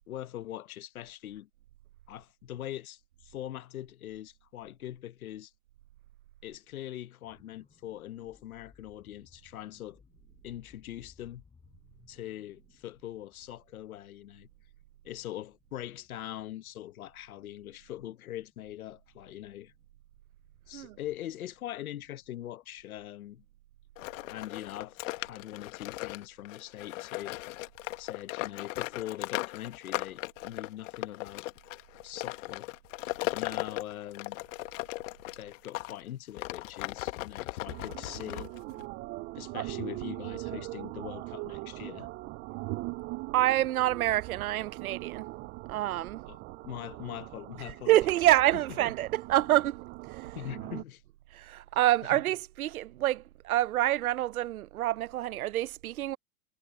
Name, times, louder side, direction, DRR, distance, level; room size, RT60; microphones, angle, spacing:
voice 1, 0.1-1.5 2.1-5.5 6.4-10.0 10.4-11.4 12.1-14.5 15.0-19.7 20.7-23.4 24.3-27.4 28.0-31.5 32.0-32.7 33.2-34.4 35.4-38.5 39.3-42.1 46.3-48.0 48.8-48.9 50.3-51.0 52.0-52.2, left 13 dB, 85° left, 1.2 m, -42 dB
sound 1, 7.2-25.1 25.5-25.6, left 5 dB, 15° left, 7.8 m, -65 dB
sound 2, 24.0-35.9 36.3-38.8, left 20 dB, 65° left, 1.8 m, -37 dB
sound 3, 37.7-50.8, right 23 dB, 25° right, 0.4 m, -41 dB
voice 2, 43.3-45.3 45.7-46.2 47.6-50.4 51.3-56.2, right 14 dB, 85° right, 0.8 m, -27 dB
hypercardioid pair, 115°, 42 cm